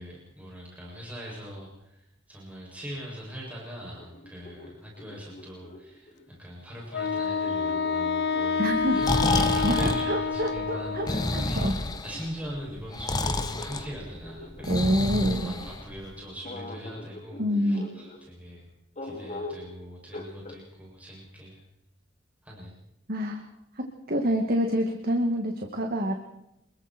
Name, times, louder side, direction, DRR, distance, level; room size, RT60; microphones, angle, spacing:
voice 1, 0.0-11.7 12.0-15.0 15.3-18.7 19.0-21.6 22.4-22.8, equal, 10° right, -4 dB, 7.2 m, -41 dB
sound 1, 3.9-6.3 7.1-10.1 10.9-15.7 16.4-18.2 19.0-19.7 20.1-20.6, left 2 dB, 40° left, 3.6 m, -43 dB
Wind instrument woodwind instrument, 6.9-11.6, left 5 dB, 60° left, 0.8 m, -28 dB
voice 2, 8.6-9.0 9.6-11.1 11.3-11.7 14.7-15.5 17.4-17.8 23.1-23.4 23.8-26.1, equal, 50° right, 3 dB, 2.4 m, -27 dB
Breathing, 8.7-16.2, left 2 dB, 20° left, 1.5 m, -29 dB
28.0 x 22.0 x 4.6 m, 0.85 s
head